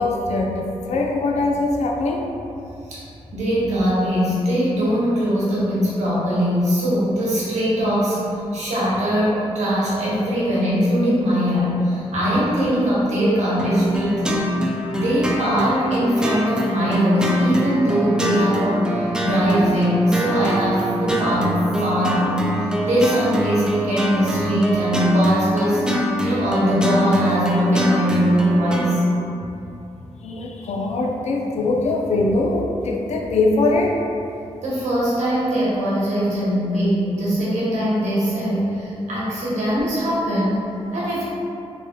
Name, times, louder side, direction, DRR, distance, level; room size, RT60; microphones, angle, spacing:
voice 1, 0.0-2.3 30.2-34.0, left 2 dB, 75° left, 0 dB, 0.4 m, -22 dB
voice 2, 3.3-14.5 14.9-29.0 34.6-40.6 40.9-41.2, equal, 85° right, -8 dB, 1.0 m, -21 dB
sound 1, 13.6-29.0, equal, 5° right, 0.3 m, -24 dB
3.2 x 2.2 x 3.3 m, 2.7 s
cardioid pair, 90°, 12 cm